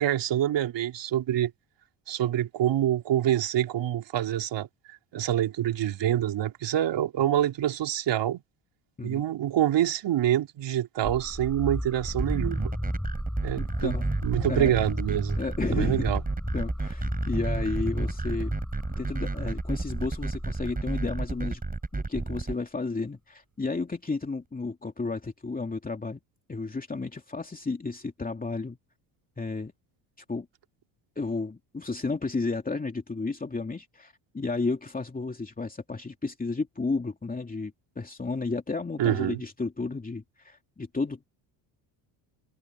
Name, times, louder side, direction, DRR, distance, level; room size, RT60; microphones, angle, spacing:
voice 1, 0.0-1.5 2.1-4.7 5.1-8.4 9.0-12.7 13.4-14.0 14.2-15.4 15.7-16.2 39.0-39.4, right 11 dB, 60° right, 4.1 m, -26 dB
sound 1, 11.0-21.9, equal, ahead, 5.8 m, -34 dB
sound 2, 12.1-22.5, right 3 dB, 15° right, 7.4 m, -31 dB
voice 2, 13.6-14.1 14.5-14.7 15.4-16.1 16.5-18.5 19.0-21.6 21.9-26.2 26.5-28.8 29.4-29.7 30.3-30.5 31.2-41.3, left 3 dB, 15° left, 2.8 m, -32 dB
supercardioid pair, 90°, 49 cm